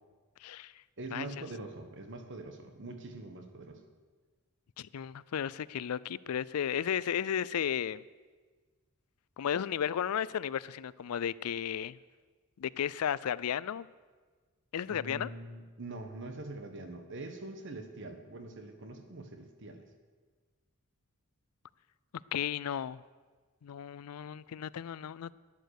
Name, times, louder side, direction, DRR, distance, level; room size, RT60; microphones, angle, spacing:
voice 1, 0.4-0.7 1.1-1.3 4.8-8.0 9.4-12.0 12.6-13.9 14.7-15.3 22.3-23.0 23.6-25.3, left 9 dB, 80° left, 20 dB, 0.4 m, -34 dB
voice 2, 1.0-3.8 14.9-19.8, right 2 dB, 55° right, 7 dB, 1.5 m, -44 dB
12.0 x 10.5 x 6.6 m, 1.4 s
head